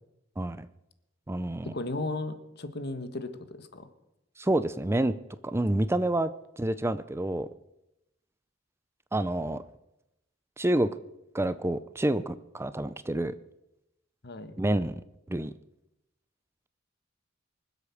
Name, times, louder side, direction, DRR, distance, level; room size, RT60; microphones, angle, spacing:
voice 1, 0.4-0.7 1.3-1.7 4.4-5.1 5.4-6.3 6.6-7.5 9.1-9.6 10.6-10.9 11.3-13.3 14.6-15.0 15.3-15.5, right 1 dB, 15° right, 14 dB, 0.5 m, -28 dB
voice 2, 1.6-3.9 14.2-14.6, left 2 dB, 55° left, 10 dB, 1.5 m, -35 dB
24.5 x 8.2 x 7.0 m, 0.88 s
head